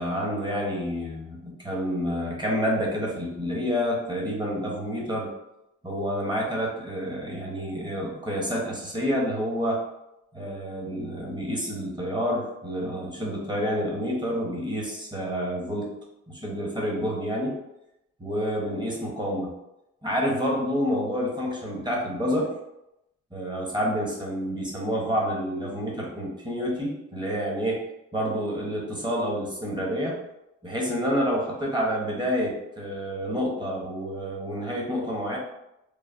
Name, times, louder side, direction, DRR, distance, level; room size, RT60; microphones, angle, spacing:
voice 1, 0.0-5.3 5.8-9.8 10.3-15.9 16.3-17.6 18.2-19.5 20.0-22.5 23.3-27.8 28.1-30.2 30.6-35.4, equal, 15° right, -2 dB, 0.9 m, -28 dB
3.1 x 2.0 x 2.5 m, 0.87 s
cardioid pair, 90°, 30 cm